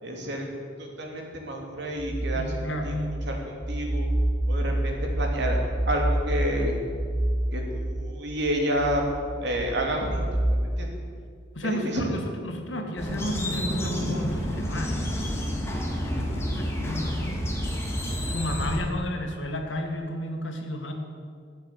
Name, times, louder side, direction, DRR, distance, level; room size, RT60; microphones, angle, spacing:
voice 1, 0.0-0.5 0.8-2.6 2.8-2.9 3.2-4.1 4.5-6.7 7.5-9.0 9.4-11.0 11.6-12.1, equal, 65° right, 1 dB, 2.8 m, -30 dB
sound 1, 2.0-10.7, right 1 dB, 30° right, 3.5 m, -28 dB
voice 2, 2.4-3.0 11.5-15.4 16.0-17.4 18.2-20.9, left 1 dB, 85° left, 3 dB, 2.0 m, -32 dB
sound 2, 13.0-18.8, equal, 15° left, 2.1 m, -29 dB
14.0 x 8.5 x 8.2 m, 2.1 s
head